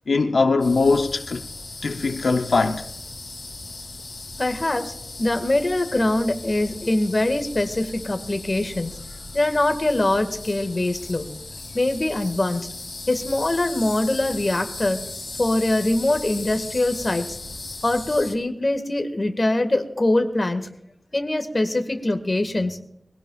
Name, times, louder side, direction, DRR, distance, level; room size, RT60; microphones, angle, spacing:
voice 1, 0.1-1.4 1.8-2.8, left 3 dB, 90° left, 0.7 m, -21 dB
sound 1, 0.6-18.4, left 2 dB, 60° left, 2.8 m, -37 dB
voice 2, 4.4-4.9 5.2-9.0 9.3-11.3 11.7-12.7 13.1-15.0 15.4-17.4 17.8-20.7 21.1-22.8, left 1 dB, 40° left, 1.8 m, -23 dB
23.5 x 17.0 x 2.4 m
wide cardioid pair, 75°, 0 cm